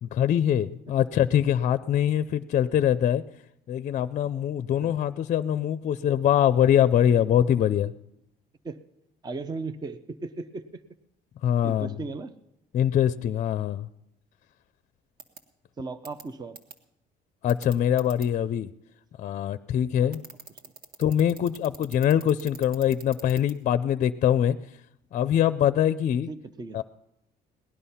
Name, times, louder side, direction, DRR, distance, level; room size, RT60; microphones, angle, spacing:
voice 1, 0.0-3.2 3.7-7.9 11.4-12.0 12.7-13.9 17.4-18.7 19.2-20.2 21.0-24.6 25.1-26.3 26.7-26.8, left 10 dB, 45° left, 14 dB, 0.5 m, -23 dB
voice 2, 9.2-10.8 11.6-12.4 15.8-16.6 20.0-20.2 26.3-26.8, right 3 dB, 25° right, 12 dB, 0.6 m, -36 dB
sound 1, 15.2-15.4 16.0-16.2 16.5-16.7 17.5-18.2 20.1-23.5, right 4 dB, 60° right, 1.7 m, -43 dB
18.5 x 11.0 x 5.7 m, 0.82 s
cardioid pair, 110°, 17 cm